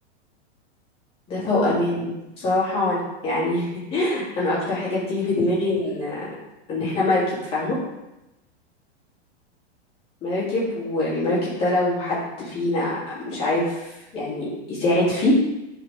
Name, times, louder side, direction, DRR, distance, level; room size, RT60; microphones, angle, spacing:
voice 1, 1.3-2.1 2.4-6.3 6.7-7.2 7.5-7.8 10.2-12.9 13.2-15.3, left 2 dB, 15° left, -8 dB, 2.8 m, -24 dB
11.0 x 5.0 x 3.5 m, 0.95 s
supercardioid pair, 175°, 34 cm